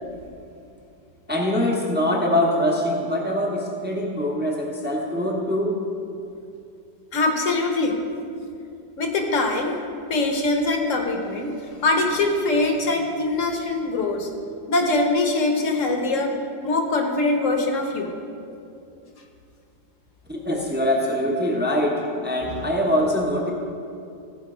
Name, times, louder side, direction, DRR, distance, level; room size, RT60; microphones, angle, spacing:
voice 1, 1.3-5.8 20.3-23.5, left 1 dB, 10° right, -1 dB, 0.6 m, -23 dB
voice 2, 7.1-8.0 9.0-9.8 10.1-11.5 11.8-14.3 14.7-16.3 16.6-18.1 22.5-22.7, left 2 dB, 50° left, 2 dB, 1.2 m, -23 dB
14.5 x 5.2 x 4.9 m, 2.5 s
omnidirectional pair, 1.9 m